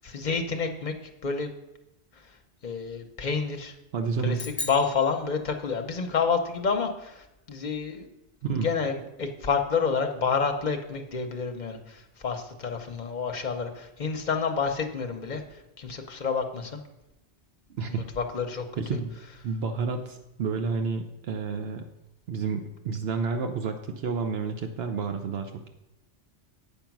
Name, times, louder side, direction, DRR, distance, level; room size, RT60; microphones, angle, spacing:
voice 1, 0.0-0.9 1.2-1.5 2.6-3.7 4.2-8.1 8.5-16.8 17.9-18.7, left 5 dB, 45° left, 4 dB, 1.0 m, -29 dB
voice 2, 3.9-4.4 8.4-8.7 17.7-18.1 18.8-19.1 19.4-21.9 22.3-25.7, right 5 dB, 75° right, 6 dB, 0.9 m, -30 dB
sound 1, 4.3-6.0, left 3 dB, 20° left, 1.2 m, -38 dB
8.6 x 5.1 x 5.9 m, 0.92 s
omnidirectional pair, 1.1 m